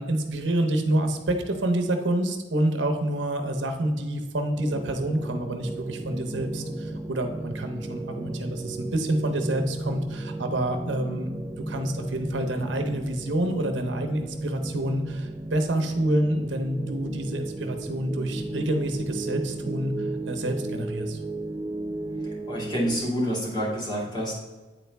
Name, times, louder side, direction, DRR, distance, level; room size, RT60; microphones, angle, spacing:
voice 1, 0.0-21.2, right 1 dB, 80° right, 5 dB, 0.8 m, -28 dB
sound 1, 4.5-23.0, right 2 dB, 25° right, 0.7 m, -35 dB
voice 2, 22.5-24.4, equal, 25° left, -6 dB, 2.0 m, -28 dB
8.7 x 4.1 x 3.4 m, 1.3 s
head